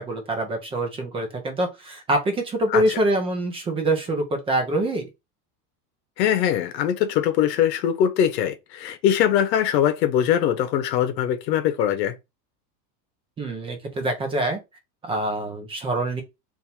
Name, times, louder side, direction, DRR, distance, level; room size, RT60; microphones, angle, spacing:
voice 1, 0.0-5.1 13.4-14.6 15.0-16.2, right 1 dB, 10° right, 0.5 m, -25 dB
voice 2, 6.2-12.1, left 10 dB, 80° left, 1.0 m, -22 dB
3.6 x 2.6 x 4.3 m
supercardioid pair, 160°, 49 cm